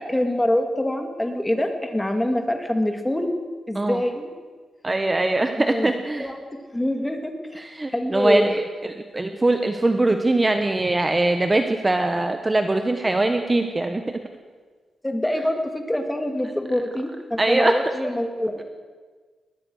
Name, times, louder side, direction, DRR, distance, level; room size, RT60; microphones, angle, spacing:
voice 1, 0.0-3.3 3.7-4.3 5.6-5.9 6.2-7.6 7.9-8.5 15.0-18.6, left 1 dB, 10° left, 5 dB, 2.6 m, -25 dB
voice 2, 4.8-6.3 7.5-14.2 17.4-17.7, right 2 dB, 20° right, 6 dB, 1.2 m, -22 dB
21.5 x 19.5 x 6.5 m, 1.5 s
cardioid pair, 115°, 0 cm